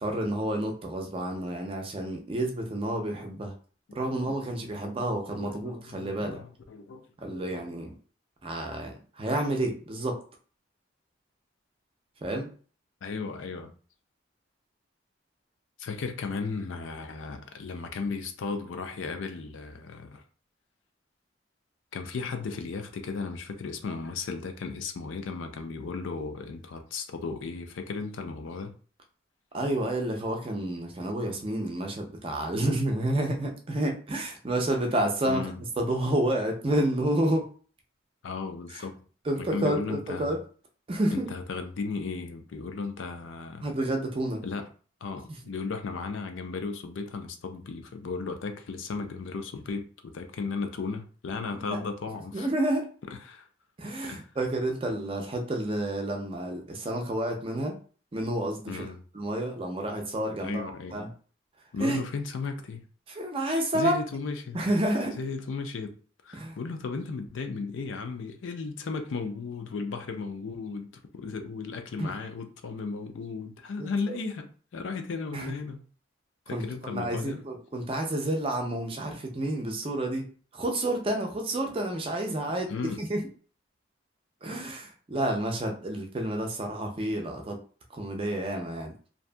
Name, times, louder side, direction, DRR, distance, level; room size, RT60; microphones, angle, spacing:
voice 1, 0.0-3.5 3.9-6.4 7.2-7.9 8.4-10.2 12.2-12.5 29.5-35.5 35.8-37.5 38.7-38.8 39.2-40.4 40.9-41.3 43.6-44.4 51.6-51.8 52.3-52.9 53.8-57.8 58.1-61.1 61.8-62.0 63.1-64.0 64.5-65.2 66.3-66.6 72.0-72.1 73.8-74.2 75.3-75.5 76.5-82.7 83.0-83.2 84.4-87.6 87.9-88.9, right 1 dB, 30° right, 2 dB, 0.4 m, -30 dB
voice 2, 3.9-5.0 5.4-7.5 13.0-13.7 15.8-20.2 21.9-28.7 35.3-35.6 38.2-39.0 39.4-40.4 41.1-43.7 44.4-44.7 45.0-52.5 53.1-53.5 54.0-54.2 58.7-58.9 60.4-61.0 61.7-62.8 63.7-64.6 65.2-65.9 66.2-70.9 71.1-75.8 76.5-77.4 82.7-83.0, left 4 dB, 75° left, 6 dB, 0.4 m, -35 dB
2.6 x 2.5 x 2.2 m, 0.41 s
head